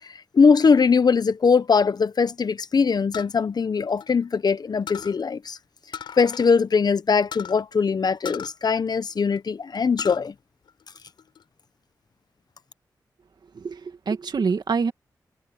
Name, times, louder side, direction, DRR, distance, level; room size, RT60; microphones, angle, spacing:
voice 1, 0.3-5.6 6.2-10.3, left 5 dB, 60° left, 1.1 m, -21 dB
sound 1, 3.1-4.5 4.9-5.2 5.9-6.5 6.8-6.9 7.3-7.6 8.2-9.4 9.7-10.2 10.7-11.4, left 8 dB, 85° left, 5.2 m, -37 dB
voice 2, 13.6-14.9, right 5 dB, 65° right, 2.2 m, -26 dB
cardioid pair, 45°, 8 cm